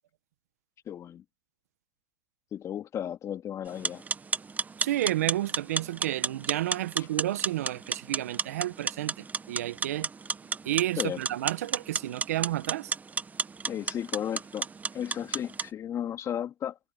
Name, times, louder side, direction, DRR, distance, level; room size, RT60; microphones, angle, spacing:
voice 1, 0.9-1.2 2.5-4.0 7.0-7.1 11.0-11.2 13.7-14.7 14.9-16.8, left 10 dB, 40° left, 2.6 m, -34 dB
sound 1, 3.7-15.7, right 5 dB, 20° right, 1.1 m, -33 dB
voice 2, 4.8-10.1 10.6-12.9, right 14 dB, 80° right, 1.3 m, -31 dB
hypercardioid pair, 90°, 8 cm